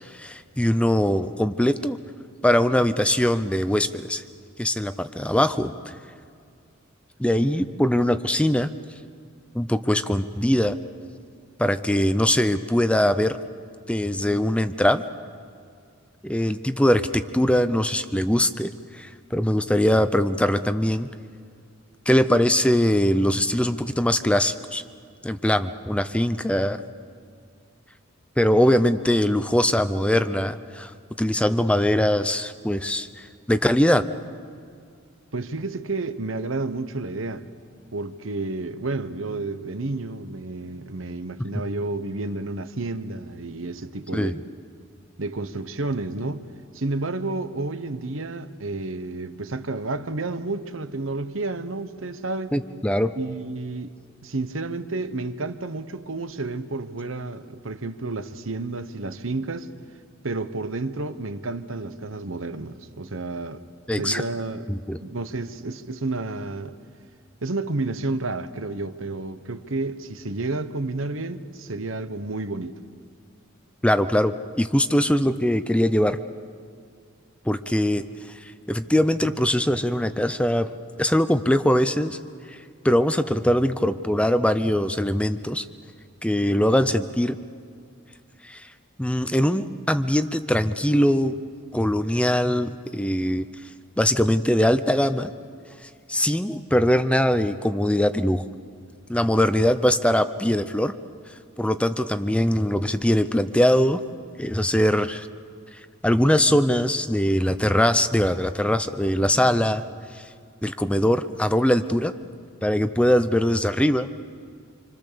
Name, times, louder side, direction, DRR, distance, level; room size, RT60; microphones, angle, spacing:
voice 1, 0.0-2.0 2.4-4.2 4.6-5.9 7.2-8.7 9.5-10.8 11.6-13.4 13.9-15.0 16.2-21.1 22.1-24.8 25.2-26.8 28.4-30.9 31.2-34.0 44.1-44.4 52.5-53.1 63.9-64.2 64.7-65.0 73.8-76.2 77.4-80.7 81.0-82.2 82.5-82.6 82.8-85.6 86.2-87.4 88.4-88.7 89.0-91.3 91.7-93.5 94.0-95.3 96.1-98.4 99.1-100.9 101.6-104.0 104.4-105.3 106.0-109.8 110.1-110.3 110.6-112.1 112.6-114.1, left 1 dB, 5° left, 0.6 m, -22 dB
voice 2, 35.3-37.4 37.9-44.4 45.2-46.4 46.7-52.5 53.1-53.9 54.2-59.7 60.2-63.6 64.0-64.7 65.0-66.8 67.4-72.8, right 2 dB, 75° right, 1.2 m, -30 dB
27.0 x 26.0 x 7.0 m
head